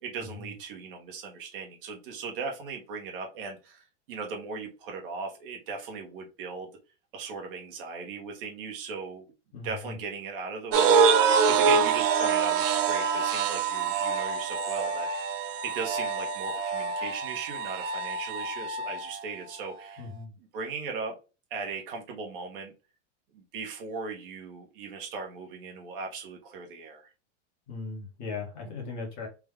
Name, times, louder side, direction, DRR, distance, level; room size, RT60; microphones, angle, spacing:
voice 1, 0.0-6.7 7.1-9.2 9.6-11.1 11.4-15.3 15.6-20.0 20.5-21.1 21.5-22.7 23.3-27.1, right 5 dB, 45° right, 1 dB, 0.9 m, -38 dB
voice 2, 9.5-10.0 20.0-20.3 27.7-29.3, left 4 dB, 35° left, -1 dB, 1.2 m, -38 dB
sound 1, 10.7-19.1, right 5 dB, 80° right, 0.8 m, -25 dB
3.5 x 2.2 x 3.5 m, 0.31 s
supercardioid pair, 180°, 37 cm